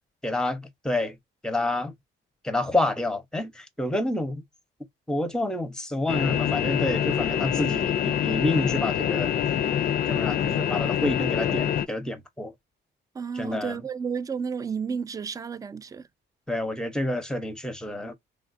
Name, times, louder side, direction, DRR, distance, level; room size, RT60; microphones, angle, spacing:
voice 1, 0.2-1.2 1.4-1.9 2.4-4.4 5.1-9.3 10.1-12.5 13.4-13.7 16.5-18.1, left 1 dB, 5° left, 0.8 m, -28 dB
sound 1, 6.1-11.9, left 9 dB, 50° left, 0.4 m, -25 dB
voice 2, 13.1-16.1, right 6 dB, 20° right, 0.3 m, -32 dB
3.3 x 2.4 x 2.5 m
cardioid pair, 90°, 20 cm